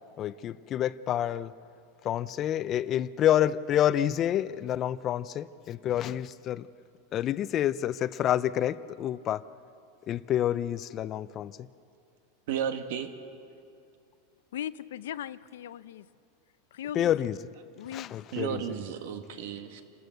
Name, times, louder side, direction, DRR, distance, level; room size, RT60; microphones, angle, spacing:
voice 1, 0.2-1.5 2.0-6.7 7.1-9.4 10.1-11.6 16.9-17.4 17.9-18.6, left 11 dB, 30° left, 17 dB, 0.5 m, -28 dB
voice 2, 12.5-13.1 18.3-19.8, right 8 dB, 70° right, 7 dB, 1.8 m, -33 dB
voice 3, 14.5-16.1 16.7-17.3 17.8-18.2, left 10 dB, 85° left, 15 dB, 0.6 m, -38 dB
28.0 x 13.5 x 8.0 m, 2.5 s
supercardioid pair, 150°, 0 cm